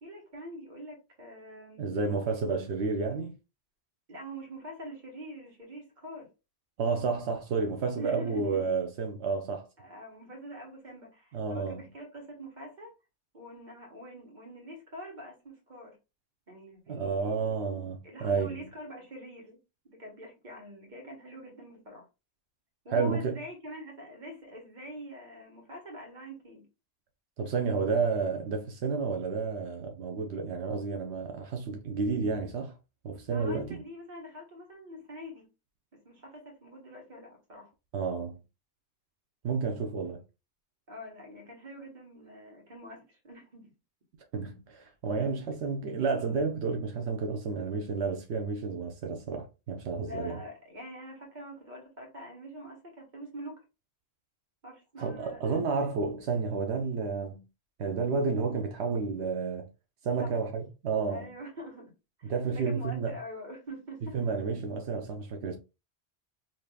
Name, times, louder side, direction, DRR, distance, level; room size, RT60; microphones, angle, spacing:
voice 1, 0.0-1.9 4.1-6.3 8.0-8.8 9.8-12.9 13.3-16.0 16.5-17.5 18.0-19.6 19.8-22.1 22.8-26.7 33.3-35.5 35.9-37.7 40.9-43.7 50.0-53.6 54.6-55.6 60.0-60.4 61.1-61.9 62.2-64.2, equal, 45° right, 1.4 m, -45 dB
voice 2, 1.8-3.3 6.8-9.7 11.3-11.9 16.9-18.6 22.9-23.4 27.4-32.7 33.0-33.8 37.9-38.4 39.4-40.2 44.3-50.4 55.0-57.4 57.8-59.7 60.0-61.3 62.2-63.2 64.1-65.6, right 4 dB, 85° right, 0.9 m, -31 dB
5.1 x 2.8 x 2.2 m
omnidirectional pair, 1.1 m